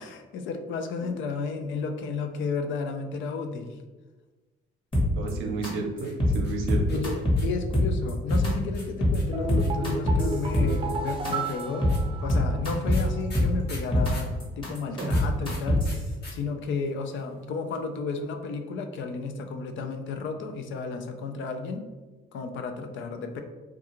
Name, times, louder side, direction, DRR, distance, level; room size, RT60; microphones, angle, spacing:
voice 1, 0.0-3.7 6.9-11.9 12.2-21.9 22.3-23.4, left 4 dB, 75° left, 6 dB, 0.4 m, -33 dB
sound 1, 4.9-5.3 5.6-5.7 6.0-6.4 6.7-7.4 7.7-8.5 8.8-9.2 9.5-10.9 11.2-11.3 11.6-12.0 12.3-13.0 13.3-14.1 14.4-16.0, left 1 dB, 25° left, 0.9 m, -23 dB
voice 2, 5.2-7.0 15.0-15.1, right 3 dB, 85° right, 2 dB, 0.6 m, -32 dB
sound 2, 6.0-7.6 8.3-9.9 10.7-14.4 15.1-16.3 16.6-16.7 16.9-17.4, left 2 dB, 55° left, 0.9 m, -46 dB
sound 3, 9.3-12.8 13.0-13.1, right 2 dB, 25° right, 0.5 m, -32 dB
2.4 x 2.3 x 2.9 m, 1.2 s
cardioid pair, 90°, 20 cm